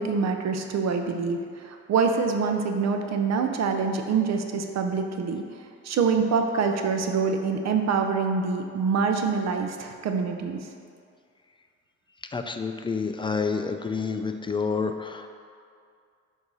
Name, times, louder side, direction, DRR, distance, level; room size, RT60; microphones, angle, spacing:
voice 1, 0.0-5.4 5.8-10.6, right 5 dB, 60° right, 5 dB, 0.6 m, -25 dB
voice 2, 12.3-15.3, left 5 dB, 15° left, 6 dB, 0.4 m, -28 dB
7.7 x 2.8 x 5.4 m, 2.3 s
cardioid pair, 90°, 30 cm